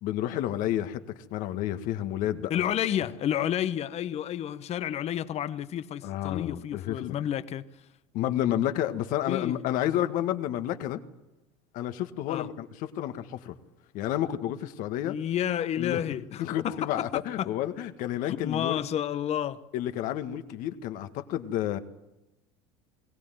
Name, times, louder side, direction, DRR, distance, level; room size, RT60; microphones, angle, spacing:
voice 1, 0.0-1.0 1.3-2.7 6.0-7.2 8.1-11.0 11.7-13.6 13.9-15.2 15.8-16.0 16.4-18.8 19.7-21.8, left 12 dB, 60° left, 1.8 m, -30 dB
voice 2, 2.5-7.6 9.3-9.6 12.3-12.5 15.0-17.5 18.3-19.6, left 10 dB, 45° left, 1.2 m, -30 dB
22.0 x 16.5 x 9.3 m
supercardioid pair, 95°, 15 cm